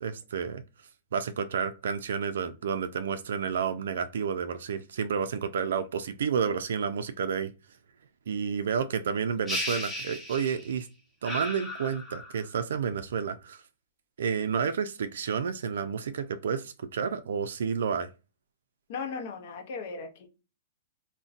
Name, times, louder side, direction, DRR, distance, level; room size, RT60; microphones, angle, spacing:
voice 1, 0.0-0.6 1.1-7.5 8.3-10.9 11.2-13.6 14.2-18.1, right 6 dB, 80° right, 0.3 m, -30 dB
sound 1, 9.5-10.8 11.2-12.5, left 1 dB, 5° left, 0.6 m, -35 dB
voice 2, 18.9-20.3, left 5 dB, 50° left, 0.7 m, -37 dB
3.8 x 2.1 x 2.4 m
hypercardioid pair, 165°, 0 cm